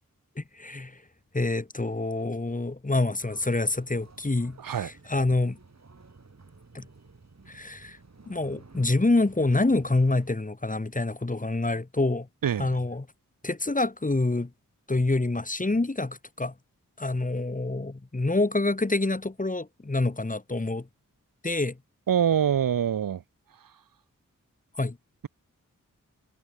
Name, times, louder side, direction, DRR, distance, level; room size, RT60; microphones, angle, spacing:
voice 1, 0.4-1.0 1.3-5.6 6.7-6.9 7.5-8.0 8.3-12.3 12.6-13.1 13.4-14.5 14.9-16.5 17.0-20.9 21.4-21.8 24.8-25.0, left 2 dB, 25° left, 1.5 m, -27 dB
sound 1, 3.2-10.3, right 3 dB, 55° right, 4.3 m, -52 dB
voice 2, 12.4-12.7 22.1-23.2, right 8 dB, 85° right, 0.8 m, -24 dB
cardioid pair, 45°, 33 cm